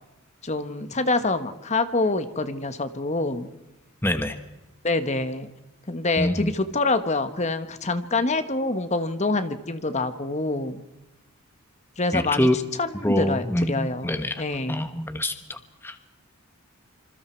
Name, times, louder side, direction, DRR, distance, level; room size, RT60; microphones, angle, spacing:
voice 1, 0.4-3.5 4.8-5.5 5.9-10.8 12.0-12.5 12.8-14.9, left 2 dB, 30° left, 10 dB, 1.4 m, -26 dB
voice 2, 4.0-4.4 6.2-6.5 12.1-12.6 13.0-14.4 14.7-16.0, left 1 dB, 10° left, 8 dB, 1.3 m, -25 dB
27.0 x 26.5 x 4.6 m, 1.0 s
head